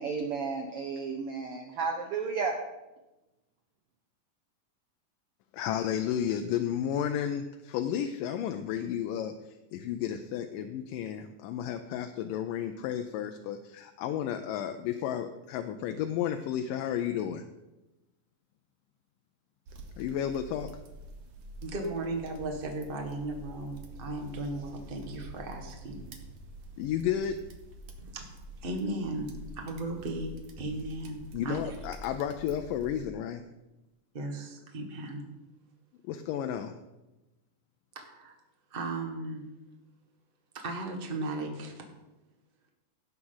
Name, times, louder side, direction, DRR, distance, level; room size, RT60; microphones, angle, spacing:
voice 1, 0.0-2.6, right 5 dB, 85° right, 3 dB, 1.2 m, -32 dB
voice 2, 5.5-9.3 9.7-17.4 20.0-20.7 26.8-27.4 31.3-33.4 36.1-36.7, left 9 dB, 80° left, 6 dB, 2.2 m, -32 dB
sound 1, 19.7-33.1, right 1 dB, 60° right, 1.6 m, -47 dB
voice 3, 21.6-26.0 28.0-28.3 28.6-31.8 34.1-35.2 37.9-38.3 38.7-39.4 40.5-41.8, right 2 dB, 40° right, 2 dB, 0.7 m, -36 dB
17.5 x 7.3 x 4.0 m, 1.0 s
omnidirectional pair, 3.9 m